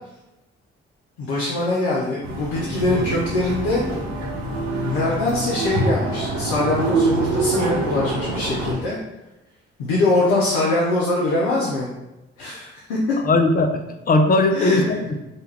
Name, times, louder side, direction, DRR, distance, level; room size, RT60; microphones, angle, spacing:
voice 1, 1.2-3.8 4.7-9.0 9.8-11.9 12.4-13.0 14.5-15.0, left 2 dB, 90° left, -4 dB, 0.5 m, -23 dB
sound 1, 2.2-8.7, right 2 dB, 70° right, 0.8 m, -25 dB
voice 2, 13.2-15.2, left 2 dB, 30° left, 6 dB, 0.4 m, -19 dB
2.3 x 2.2 x 3.2 m, 0.99 s
hypercardioid pair, 45°, 29 cm